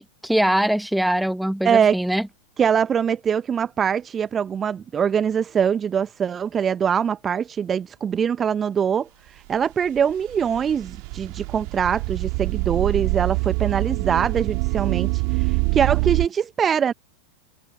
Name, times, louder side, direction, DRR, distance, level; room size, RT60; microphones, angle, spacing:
voice 1, 0.0-2.3, equal, ahead, 1.4 m, -22 dB
voice 2, 1.6-2.0 2.6-16.9, right 7 dB, 20° right, 0.8 m, -23 dB
sound 1, 9.5-16.3, right 40 dB or more, 45° right, 2.3 m, -25 dB
figure-of-eight pair, 90°, 0 cm